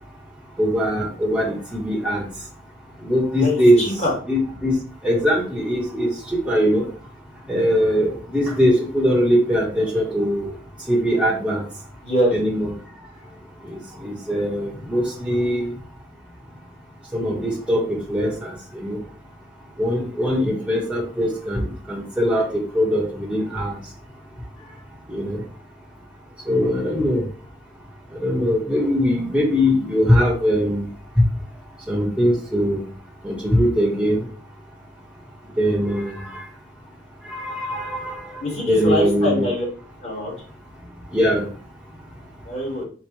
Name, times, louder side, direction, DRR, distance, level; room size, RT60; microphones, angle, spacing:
voice 1, 0.6-2.3 3.0-3.8 4.3-4.8 5.0-6.8 7.5-10.5 10.9-11.6 12.3-12.7 13.6-15.7 17.1-19.0 19.8-23.8 25.1-25.4 26.5-27.2 28.2-30.9 31.9-32.8 33.2-34.2 35.6-36.4 37.2-39.5 41.1-41.4, equal, 5° right, -5 dB, 1.1 m, -21 dB
voice 2, 3.4-4.1 12.0-12.3 38.4-39.6 40.0-40.3 42.4-42.8, left 1 dB, 35° left, -4 dB, 1.7 m, -23 dB
4.6 x 2.4 x 4.5 m, 0.42 s
head